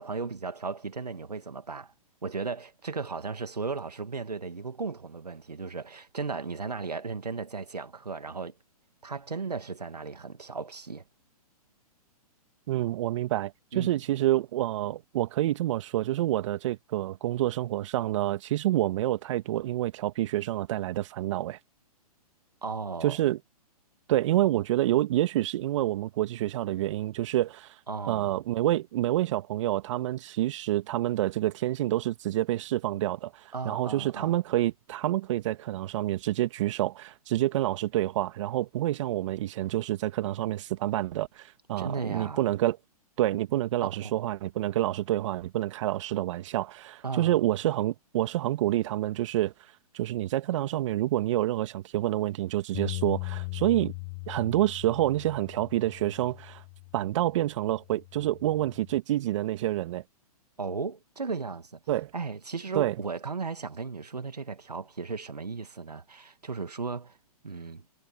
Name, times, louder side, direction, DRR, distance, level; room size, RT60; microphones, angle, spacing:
voice 1, 0.0-1.9 2.2-8.6 9.0-11.0 13.7-14.0 22.6-23.2 27.9-28.4 33.5-34.4 41.8-42.4 44.0-44.1 47.0-47.3 60.6-61.8 62.1-67.2 67.4-67.8, right 4 dB, 90° right, 2.2 m, -35 dB
voice 2, 12.7-21.6 23.0-23.4 24.1-27.7 28.1-42.8 43.2-49.5 49.9-53.9 54.3-56.6 56.9-60.0 61.9-62.1 62.7-62.9, right 14 dB, 50° right, 2.3 m, -28 dB
Bass guitar, 52.7-57.2 57.8-59.0, left 28 dB, 40° left, 7.0 m, -39 dB
hypercardioid pair, 125°, 20 cm